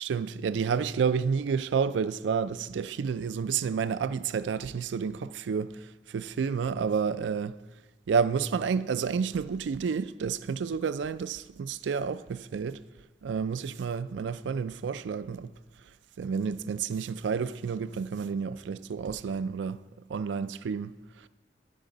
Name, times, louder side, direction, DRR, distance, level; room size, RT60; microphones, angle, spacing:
voice 1, 0.0-7.6 8.1-12.8 13.2-15.5 16.2-19.8 20.1-21.3, right 6 dB, 90° right, 0.4 m, -30 dB
10.5 x 7.8 x 5.0 m
head